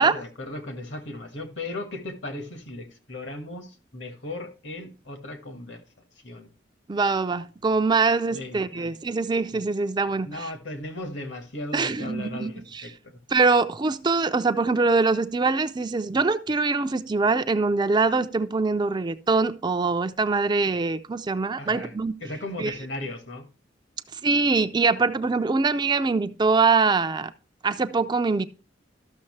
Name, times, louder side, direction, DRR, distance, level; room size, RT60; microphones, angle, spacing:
voice 1, 0.0-5.8 6.1-6.5 8.3-8.9 9.5-9.6 10.2-13.2 21.6-21.9 22.2-23.5, left 2 dB, 70° left, 1.6 m, -37 dB
voice 2, 6.9-10.5 11.7-12.8 13.3-22.1 22.6-22.7 24.1-27.3 27.6-28.5, right 4 dB, 25° right, 0.4 m, -23 dB
13.0 x 6.4 x 3.2 m
head